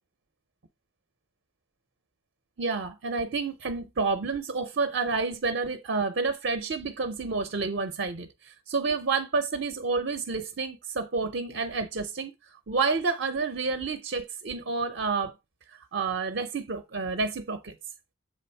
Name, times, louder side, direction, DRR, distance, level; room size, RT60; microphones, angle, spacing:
voice 1, 2.6-15.3 15.7-17.8, right 4 dB, 55° right, 0.6 m, -29 dB
7.4 x 3.5 x 4.5 m
head